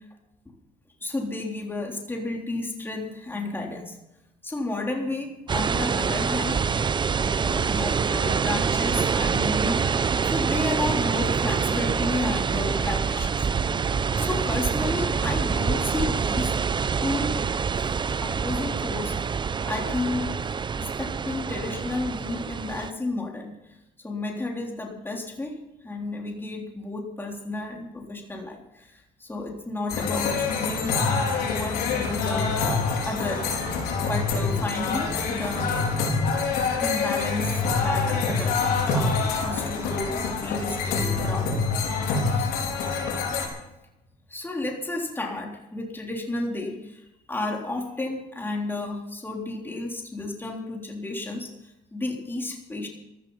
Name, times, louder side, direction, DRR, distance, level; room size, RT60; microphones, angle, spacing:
voice 1, 1.0-4.0 4.4-6.7 7.1-9.8 10.2-13.5 14.2-16.6 17.0-17.4 17.8-17.9 18.2-19.3 19.7-20.3 20.7-23.8 24.0-25.6 25.8-31.0 31.5-32.7 33.0-33.5 34.0-36.0 36.8-41.6 42.3-42.5 44.3-52.9, left 2 dB, 15° left, 0 dB, 3.5 m, -32 dB
Forest Wind Leaves Trees Birds, 5.5-22.9, right 6 dB, 30° right, 0.7 m, -26 dB
sound 1, 29.9-43.5, left 4 dB, 75° left, 5.0 m, -26 dB
14.0 x 13.5 x 5.7 m, 0.93 s
supercardioid pair, 85°, 16 cm